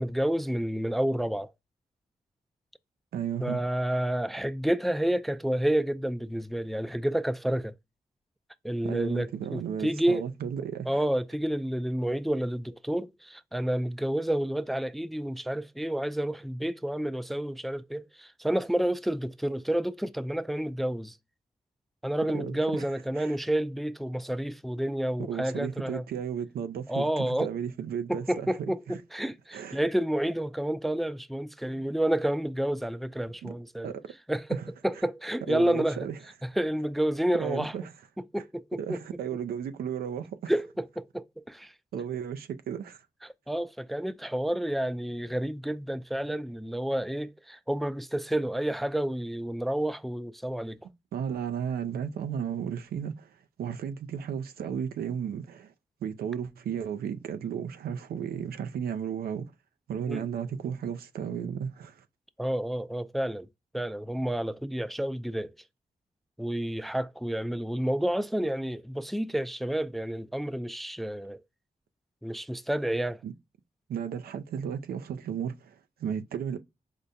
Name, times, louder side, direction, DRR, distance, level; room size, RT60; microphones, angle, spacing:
voice 1, 0.0-1.5 3.4-7.7 8.6-10.3 10.9-21.2 22.0-26.0 26.9-27.5 28.1-33.9 34.3-34.6 34.8-36.1 36.4-37.7 38.3-39.0 40.5-41.7 43.5-50.8 60.1-60.2 62.4-63.5 63.7-65.5 66.4-71.4 72.2-73.2, right 1 dB, ahead, 0.3 m, -30 dB
voice 2, 3.1-3.6 8.8-11.0 22.3-22.9 23.2-23.3 25.3-28.5 28.9-29.0 29.5-29.8 33.4-33.5 33.8-34.1 34.5-34.7 35.5-36.2 37.4-37.8 38.8-40.5 41.9-43.0 51.1-55.7 56.0-59.5 59.9-62.0 73.2-73.3 73.9-76.6, right 8 dB, 85° right, 0.4 m, -34 dB
5.1 x 2.1 x 2.6 m
cardioid pair, 45°, 15 cm